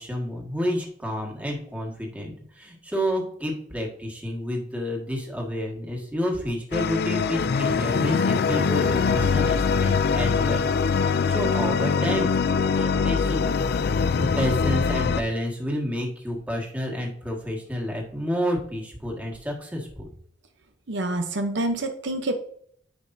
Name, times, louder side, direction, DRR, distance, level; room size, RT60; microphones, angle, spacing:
voice 1, 0.0-12.3 12.7-13.4 14.2-20.1, equal, 10° right, -1 dB, 1.7 m, -30 dB
sound 1, 6.7-15.2, left 5 dB, 55° left, 0.4 m, -23 dB
voice 2, 20.9-22.3, right 1 dB, 65° right, 6 dB, 0.8 m, -27 dB
9.9 x 5.1 x 2.7 m, 0.63 s
head